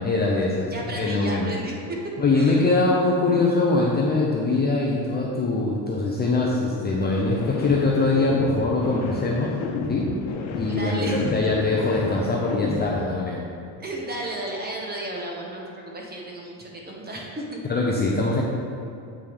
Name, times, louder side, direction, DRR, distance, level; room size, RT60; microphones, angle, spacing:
voice 1, 0.0-0.7 1.0-1.5 2.2-9.6 9.9-10.1 10.5-13.4 17.7-18.4, left 3 dB, 20° left, -3 dB, 0.6 m, -22 dB
voice 2, 0.7-2.0 2.3-2.6 10.7-11.5 13.8-17.6, right 1 dB, 20° right, -1 dB, 1.0 m, -33 dB
sound 1, 7.1-13.1, left 4 dB, 90° left, 1.1 m, -32 dB
8.2 x 5.5 x 3.5 m, 2.7 s
cardioid pair, 150°, 47 cm